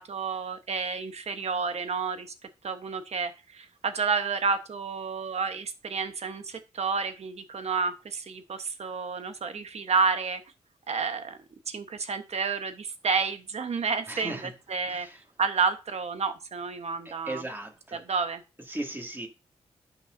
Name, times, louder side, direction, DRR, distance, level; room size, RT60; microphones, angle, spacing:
voice 1, 0.0-2.3 2.6-10.4 10.9-11.4 11.7-15.1 15.4-17.4 17.9-18.4, right 5 dB, 60° right, 1.2 m, -30 dB
voice 2, 14.1-14.5 14.9-15.2 17.0-18.0 18.7-19.3, right 1 dB, 15° right, 2.4 m, -37 dB
12.0 x 6.1 x 2.7 m
cardioid pair, 60°, 12 cm